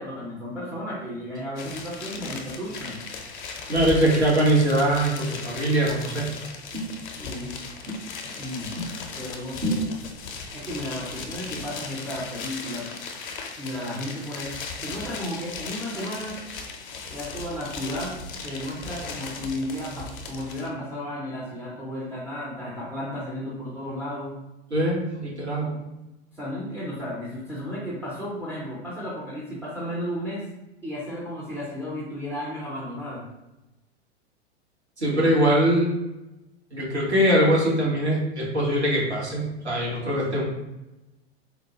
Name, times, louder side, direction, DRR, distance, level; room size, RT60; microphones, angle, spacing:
voice 1, 0.0-3.0 7.2-7.6 8.2-8.8 9.2-9.8 10.5-12.9 13.6-16.4 17.1-24.4 25.6-25.8 26.3-30.5 30.8-33.2 35.1-35.3, equal, 5° right, -7 dB, 0.4 m, -34 dB
sound 1, 1.5-20.7, left 4 dB, 45° left, 0.6 m, -37 dB
voice 2, 3.7-6.3 6.7-6.9 9.6-9.9 24.7-25.7 35.0-35.9 36.7-40.4, right 1 dB, 85° right, -5 dB, 1.2 m, -22 dB
3.9 x 2.1 x 2.8 m, 0.96 s
figure-of-eight pair, 95°, 32 cm